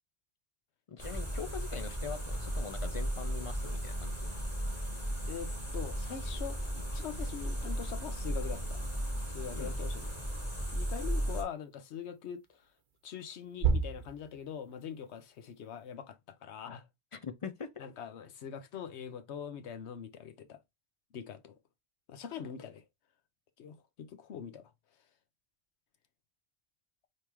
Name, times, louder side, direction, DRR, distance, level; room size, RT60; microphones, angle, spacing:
voice 1, 0.9-4.3 9.5-9.8 17.1-17.7, left 6 dB, 45° left, 0.4 m, -42 dB
sound 1, 1.0-11.4, equal, 10° left, 2.9 m, -35 dB
voice 2, 5.3-8.8 9.3-10.1 10.7-12.7 13.0-16.9 17.8-20.6 21.1-21.6 22.1-22.8 23.6-24.6, left 8 dB, 85° left, 1.0 m, -43 dB
sound 2, 5.9-15.9, right 5 dB, 55° right, 0.8 m, -40 dB
4.5 x 3.2 x 3.4 m
omnidirectional pair, 1.1 m